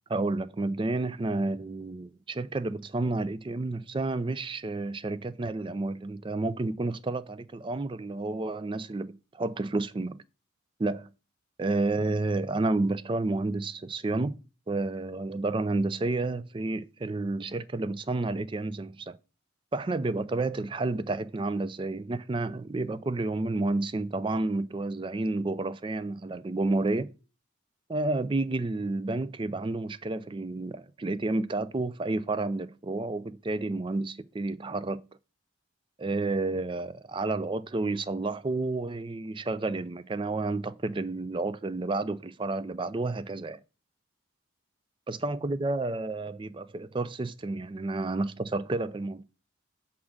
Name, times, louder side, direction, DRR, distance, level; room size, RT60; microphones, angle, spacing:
voice 1, 0.1-10.2 10.8-11.1 11.6-14.4 14.7-19.2 19.7-27.1 27.9-35.0 36.0-43.6 45.1-49.2, right 2 dB, 25° right, 0.3 m, -30 dB
7.2 x 3.7 x 6.3 m
head